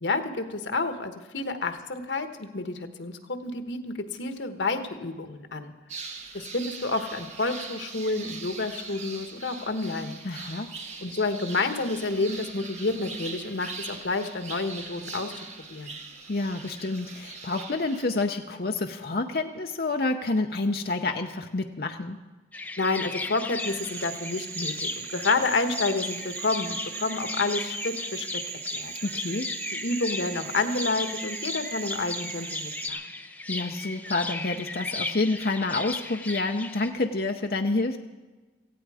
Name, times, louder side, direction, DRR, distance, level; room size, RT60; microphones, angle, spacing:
voice 1, 0.0-5.7 6.3-10.2 11.0-15.3 15.7-16.0 22.8-28.3 28.7-28.9 29.8-33.0, left 3 dB, 90° left, 8 dB, 1.3 m, -29 dB
sound 1, 5.9-18.1, right 4 dB, 40° right, 1.4 m, -41 dB
voice 2, 10.2-10.7 16.3-22.2 29.0-29.5 33.5-38.0, left 2 dB, 55° left, 4 dB, 0.7 m, -28 dB
sound 2, 22.5-36.9, left 3 dB, 10° left, 0.8 m, -36 dB
Cricket / Frog, 23.6-32.9, right 9 dB, 60° right, 0.7 m, -39 dB
18.0 x 15.5 x 4.9 m, 1.2 s
head